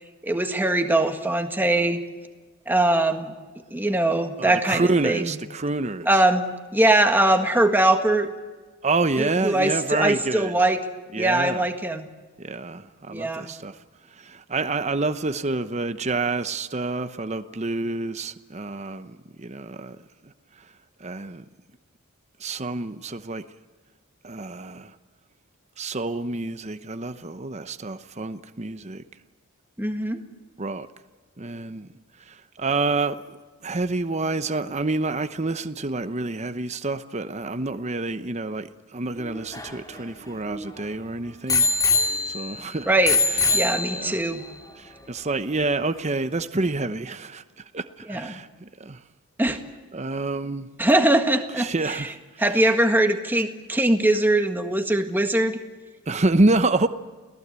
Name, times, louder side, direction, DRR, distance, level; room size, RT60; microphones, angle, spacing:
voice 1, 0.2-2.0 2.7-3.3 3.7-5.3 6.1-6.5 6.7-8.3 9.2-10.8 11.2-12.1 13.1-13.5 29.8-30.2 42.9-43.2 43.5-44.4 48.1-48.4 49.4-49.6 50.8-52.1 52.4-55.6, right 1 dB, 10° right, 1.7 m, -21 dB
voice 2, 4.4-6.2 8.8-10.6 11.1-11.6 12.4-13.8 14.2-20.0 20.2-20.3 21.0-21.4 22.4-23.4 24.2-24.9 25.8-29.0 30.6-30.9 31.4-31.9 32.3-33.4 33.6-41.7 42.3-42.9 43.3-44.2 44.8-49.0 49.9-50.7 51.6-52.1 56.1-56.9, right 3 dB, 30° right, 0.9 m, -28 dB
Bicycle bell, 39.2-40.8 41.5-42.6 43.1-44.3 45.0-45.1, left 4 dB, 15° left, 2.4 m, -23 dB
29.5 x 18.0 x 8.3 m
head